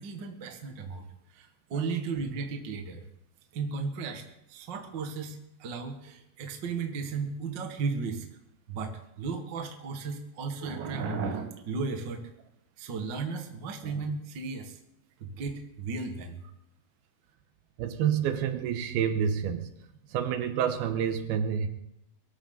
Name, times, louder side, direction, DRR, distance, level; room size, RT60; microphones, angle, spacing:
voice 1, 0.0-3.0 3.5-4.2 4.5-8.3 8.7-12.3 12.8-14.8 15.2-16.4, right 4 dB, 45° right, 4 dB, 1.5 m, -35 dB
voice 2, 17.8-19.7 20.1-21.7, right 8 dB, 80° right, 8 dB, 2.9 m, -28 dB
23.0 x 13.5 x 3.9 m, 0.84 s
omnidirectional pair, 4.5 m